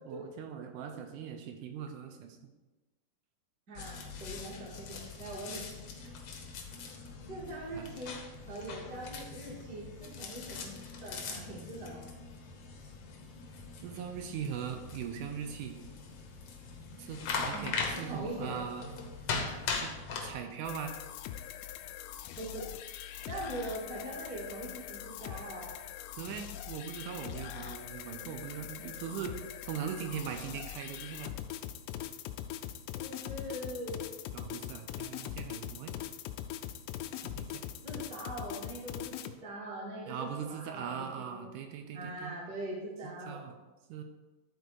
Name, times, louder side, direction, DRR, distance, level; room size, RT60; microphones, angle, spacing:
voice 1, 0.1-2.4 7.7-7.9 13.8-15.7 17.0-18.8 19.8-20.0 20.2-21.0 26.2-29.4 29.7-31.4 34.3-35.9 37.4-37.6 40.1-42.3 43.0-43.5 43.9-44.0, right 8 dB, 80° right, 5 dB, 1.9 m, -40 dB
voice 2, 3.7-5.7 7.3-8.2 8.4-10.7 11.0-12.1 17.5-18.6 22.3-22.7 23.2-25.8 32.9-34.0 37.8-41.4 41.9-43.4, right 1 dB, 35° right, -5 dB, 1.7 m, -42 dB
sound 1, 3.8-20.3, left 4 dB, 70° left, 1.5 m, -41 dB
sound 2, 20.6-39.3, left 11 dB, 85° left, 2.5 m, -42 dB
12.0 x 4.3 x 4.8 m, 1.2 s
omnidirectional pair, 4.4 m